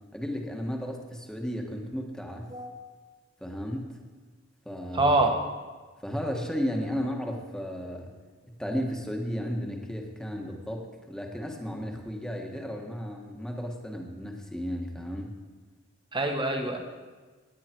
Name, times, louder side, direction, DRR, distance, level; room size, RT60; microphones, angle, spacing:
voice 1, 0.1-2.5 3.4-4.0 4.6-5.2 6.0-8.1 8.5-15.3, equal, 5° left, 1 dB, 1.5 m, -34 dB
voice 2, 4.9-5.3 16.1-16.8, right 2 dB, 25° right, 4 dB, 1.4 m, -25 dB
18.5 x 9.7 x 4.6 m, 1.4 s
head